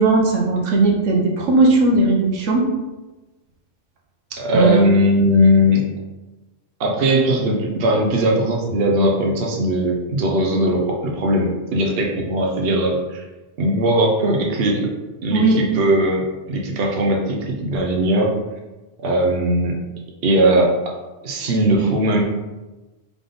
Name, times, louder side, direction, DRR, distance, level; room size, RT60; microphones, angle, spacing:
voice 1, 0.0-2.6 4.5-4.8 15.3-15.6, right 3 dB, 80° right, 0 dB, 1.1 m, -17 dB
voice 2, 4.4-5.8 6.8-13.2 13.6-14.9 15.2-18.3 19.0-19.7 20.2-20.9 21.2-22.2, equal, 55° right, 0 dB, 0.9 m, -19 dB
3.6 x 3.5 x 3.8 m, 1.1 s
omnidirectional pair, 1.3 m